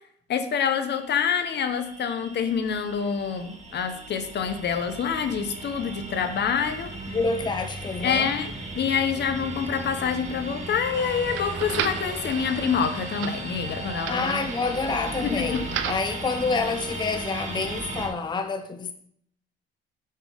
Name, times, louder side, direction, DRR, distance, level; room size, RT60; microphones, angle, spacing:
voice 1, 0.3-6.9 8.0-14.4 15.2-15.6, left 7 dB, 60° left, 0.9 m, -26 dB
sound 1, 0.7-18.1, right 2 dB, 35° right, 1.7 m, -36 dB
voice 2, 7.1-8.3 14.1-18.9, left 4 dB, 20° left, 0.6 m, -28 dB
sound 2, 10.3-16.1, right 9 dB, 85° right, 0.6 m, -36 dB
sound 3, 10.9-15.1, right 2 dB, 65° right, 2.0 m, -44 dB
6.2 x 4.4 x 5.2 m
cardioid pair, 90°, 20 cm